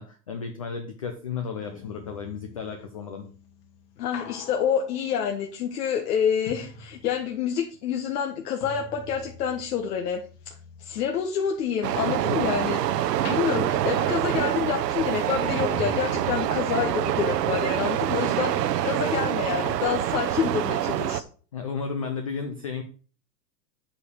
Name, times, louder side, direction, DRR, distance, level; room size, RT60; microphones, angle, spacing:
voice 1, 0.0-3.3 21.5-22.8, left 5 dB, 25° left, 5 dB, 0.4 m, -33 dB
sound 1, 1.6-7.6 7.9-12.7 13.1-19.4 19.7-19.8, left 4 dB, 45° left, 2.3 m, -44 dB
voice 2, 4.0-10.2 10.8-12.8 13.3-21.2, left 8 dB, 65° left, 3 dB, 1.6 m, -28 dB
sound 2, 11.8-21.2, right 12 dB, 70° right, 1.0 m, -26 dB
8.4 x 4.9 x 6.4 m, 0.40 s
supercardioid pair, 160°, 49 cm